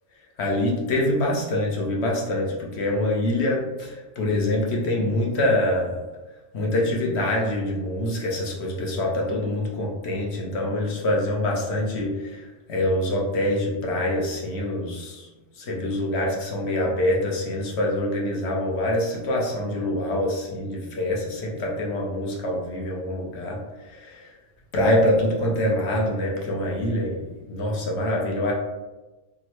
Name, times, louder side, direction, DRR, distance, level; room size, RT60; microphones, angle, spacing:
voice 1, 0.4-5.9 6.5-12.4 12.7-15.3 15.6-23.6 24.0-24.2 24.7-28.5, left 1 dB, 65° left, -1 dB, 1.0 m, -25 dB
3.5 x 2.0 x 2.9 m, 1.1 s
omnidirectional pair, 1.3 m